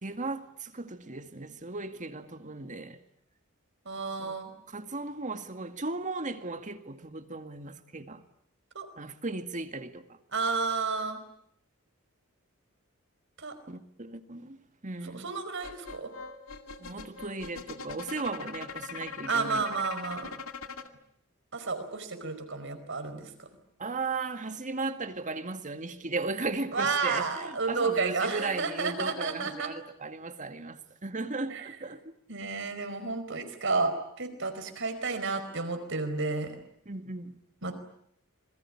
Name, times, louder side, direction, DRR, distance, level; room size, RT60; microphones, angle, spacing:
voice 1, 0.0-3.0 4.2-4.4 4.7-8.2 9.0-10.0 13.7-14.6 14.8-15.3 16.8-19.6 23.8-32.0 36.9-37.4, right 3 dB, 35° right, 2.0 m, -36 dB
voice 2, 3.8-4.5 8.7-8.9 10.3-11.2 13.4-13.5 15.0-16.1 19.3-20.4 21.5-23.5 26.7-29.7 31.5-31.7 32.3-36.6 37.6-37.7, right 4 dB, 60° right, 4.9 m, -31 dB
sound 1, 15.6-20.9, left 5 dB, 80° left, 2.3 m, -41 dB
27.5 x 21.5 x 9.9 m
head